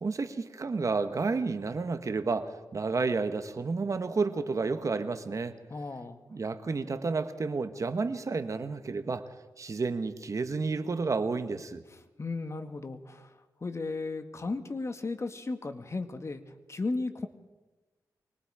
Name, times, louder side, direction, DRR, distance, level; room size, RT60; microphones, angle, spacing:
voice 1, 0.0-5.6 6.3-9.3 9.6-11.8, right 4 dB, 50° right, 9 dB, 1.4 m, -31 dB
voice 2, 5.7-6.2 11.9-17.3, left 3 dB, 45° left, 8 dB, 1.9 m, -35 dB
24.5 x 21.5 x 5.0 m, 1.2 s
cardioid pair, 65°, 7 cm